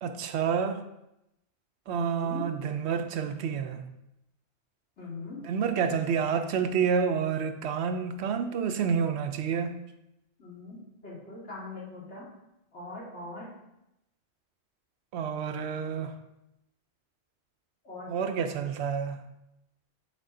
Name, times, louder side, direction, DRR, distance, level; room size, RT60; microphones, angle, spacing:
voice 1, 0.0-0.8 1.9-3.9 5.4-9.8 15.1-16.1 18.1-19.2, right 6 dB, 75° right, 8 dB, 0.8 m, -29 dB
voice 2, 1.9-2.5 5.0-5.4 10.4-12.3 12.7-13.5 17.8-18.5, left 3 dB, 85° left, -6 dB, 2.5 m, -41 dB
8.2 x 4.1 x 3.7 m, 0.88 s
omnidirectional pair, 1.1 m